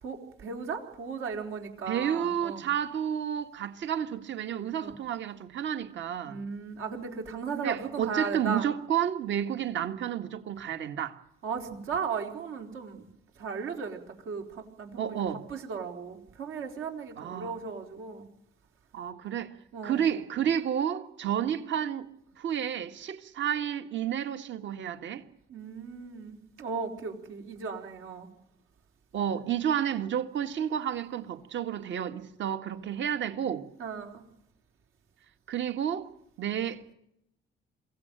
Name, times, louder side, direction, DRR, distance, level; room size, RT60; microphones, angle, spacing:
voice 1, 0.0-2.6 4.8-4.9 6.2-8.7 11.4-13.1 13.4-18.2 19.7-20.1 21.4-21.5 25.5-28.3 33.8-34.2, right 5 dB, 85° right, 4.2 m, -36 dB
voice 2, 1.9-6.4 7.5-11.2 15.0-15.4 17.2-17.5 18.9-19.5 19.8-22.1 22.4-25.2 29.1-33.7 35.5-36.1 36.4-36.9, right 9 dB, 70° right, 1.8 m, -31 dB
23.5 x 16.5 x 9.0 m
cardioid pair, 90°, 20 cm